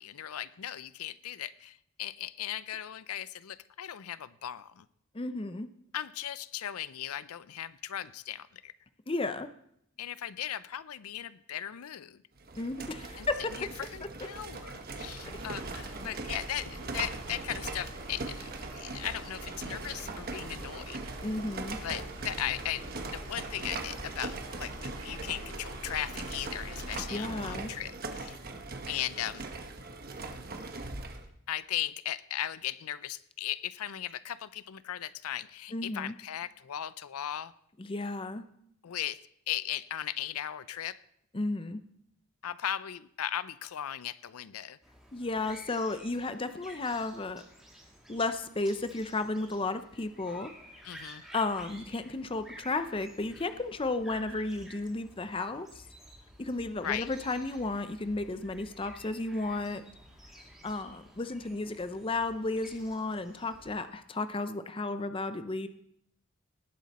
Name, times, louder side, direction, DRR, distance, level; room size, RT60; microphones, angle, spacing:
voice 1, 0.0-4.9 5.9-8.7 10.0-12.2 13.2-21.0 21.8-28.4 28.9-29.5 31.5-37.5 38.8-41.0 42.4-44.8 50.8-51.2 56.8-57.1, left 11 dB, 85° left, 16 dB, 0.5 m, -37 dB
voice 2, 5.1-5.7 9.1-9.5 12.6-13.5 21.2-21.8 27.1-27.7 35.7-36.2 37.8-38.4 41.3-41.8 45.1-47.4 48.1-50.5 51.3-55.8 56.4-59.8 60.6-65.7, left 2 dB, 25° left, 11 dB, 0.6 m, -33 dB
sound 1, 12.4-31.3, right 3 dB, 45° right, 1.2 m, -41 dB
sound 2, 15.2-27.0, right 1 dB, 65° right, 3.4 m, -45 dB
sound 3, 44.8-63.8, equal, ahead, 2.9 m, -53 dB
19.0 x 7.6 x 4.2 m, 0.73 s
head